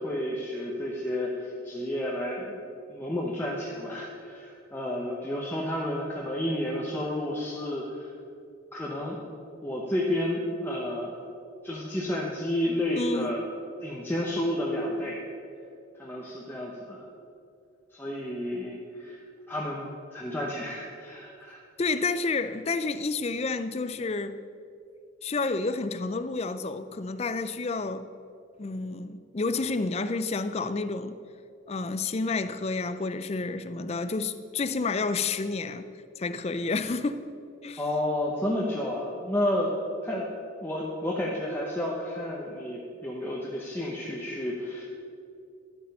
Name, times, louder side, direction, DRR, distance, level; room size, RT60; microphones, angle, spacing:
voice 1, 0.0-2.6 2.9-8.1 8.7-9.2 9.6-11.3 11.6-13.4 13.8-15.2 16.0-17.1 17.9-19.2 19.5-21.6 37.8-39.8 40.0-40.3 40.6-44.9, left 1 dB, 10° left, 0.9 m, -31 dB
voice 2, 13.0-13.4 21.8-24.4 25.2-28.1 28.6-31.2 31.7-35.9 36.2-37.2 37.6-37.8, left 3 dB, 30° left, 0.4 m, -30 dB
11.5 x 8.6 x 5.4 m
head